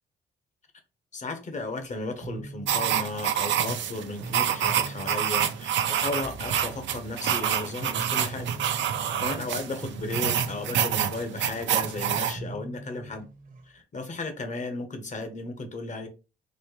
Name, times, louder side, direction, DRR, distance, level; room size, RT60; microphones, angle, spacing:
voice 1, 1.1-8.5 9.2-13.3 13.7-16.1, left 2 dB, 40° left, 1.0 m, -35 dB
sound 1, 1.6-13.8, right 3 dB, 45° right, 0.9 m, -43 dB
sound 2, 2.7-12.4, right 9 dB, 70° right, 0.6 m, -27 dB
4.3 x 2.6 x 3.1 m
cardioid pair, 90°, 20 cm